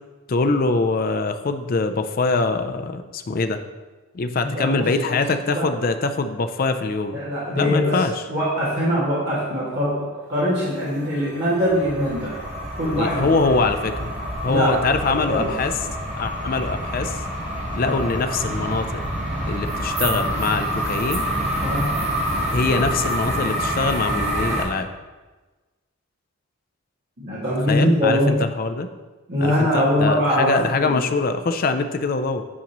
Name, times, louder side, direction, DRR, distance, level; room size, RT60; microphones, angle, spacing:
voice 1, 0.3-3.6 4.1-7.2 7.6-8.2 13.0-14.1 14.4-15.7 16.2-17.2 17.7-18.9 19.5-21.3 22.5-24.9 27.7-28.9 29.4-32.4, left 3 dB, 40° left, 8 dB, 0.4 m, -23 dB
voice 2, 4.5-5.2 5.4-5.7 7.1-8.0 8.3-12.3 12.8-13.3 14.5-14.8 15.1-15.5 17.9-18.1 21.6-21.9 27.2-28.3 29.3-31.0, equal, 50° right, -9 dB, 2.0 m, -22 dB
sound 1, 10.2-22.5, left 3 dB, 10° left, 1.4 m, -40 dB
sound 2, 11.7-24.6, right 1 dB, 30° right, 1.1 m, -27 dB
8.6 x 5.2 x 3.0 m, 1.3 s
head